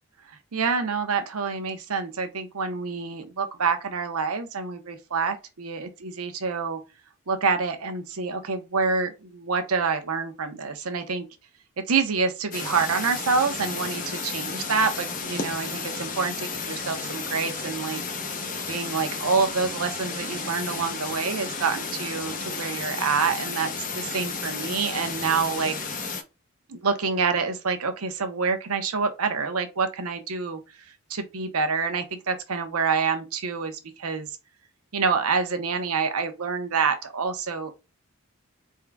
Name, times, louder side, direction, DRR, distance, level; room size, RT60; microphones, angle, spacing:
voice 1, 0.3-6.8 7.3-11.3 11.8-18.0 18.7-25.9 26.7-30.8 31.1-34.3 34.9-37.7, right 5 dB, 90° right, 0.8 m, -27 dB
sound 1, 12.5-26.2, left 4 dB, 35° left, 0.7 m, -33 dB
4.6 x 3.7 x 2.3 m
head